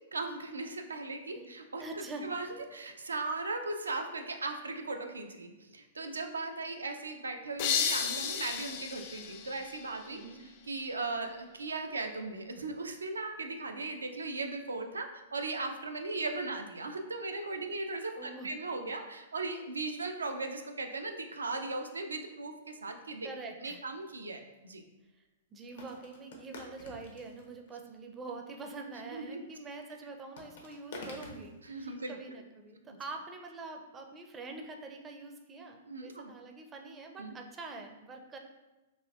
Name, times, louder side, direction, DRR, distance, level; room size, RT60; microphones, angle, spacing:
voice 1, 0.1-23.3 23.6-24.8 29.0-29.4 31.6-32.2 32.8-33.0 35.9-36.3 37.2-37.3, right 3 dB, 85° right, 5 dB, 0.4 m, -38 dB
voice 2, 1.8-2.3 10.1-10.4 18.2-18.5 23.2-23.8 25.2-25.3 25.5-38.4, right 3 dB, 20° right, 3 dB, 0.4 m, -45 dB
sound 1, 7.6-10.4, left 7 dB, 50° left, 0.3 m, -34 dB
sound 2, 24.5-24.6 25.8-27.7 30.4-31.6, left 2 dB, 70° left, 0.7 m, -47 dB
4.1 x 2.6 x 2.4 m, 1.1 s
hypercardioid pair, 110°, 0 cm